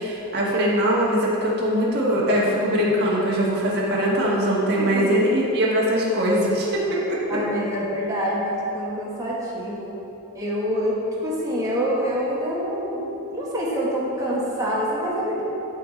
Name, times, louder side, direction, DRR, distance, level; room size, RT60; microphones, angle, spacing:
voice 1, 0.0-7.4, equal, 45° right, -5 dB, 1.4 m, -22 dB
voice 2, 4.8-5.2 7.3-9.9 10.3-13.0 13.3-15.4, equal, 15° right, -6 dB, 1.3 m, -26 dB
11.5 x 3.8 x 4.1 m, 3.0 s
head